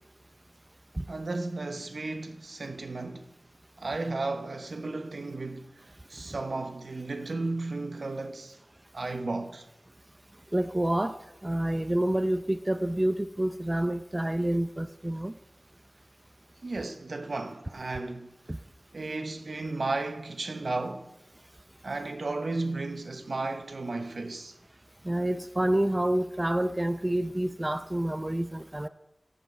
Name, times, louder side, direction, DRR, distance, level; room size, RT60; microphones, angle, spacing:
voice 1, 1.1-3.3 3.8-8.6 8.9-9.7 16.6-18.3 18.9-21.1 21.8-24.5, right 3 dB, 80° right, 0.9 m, -34 dB
voice 2, 10.5-15.3 18.5-18.6 25.0-28.9, right 1 dB, 25° right, 0.5 m, -28 dB
17.0 x 7.9 x 4.4 m
wide cardioid pair, 50°, 0 cm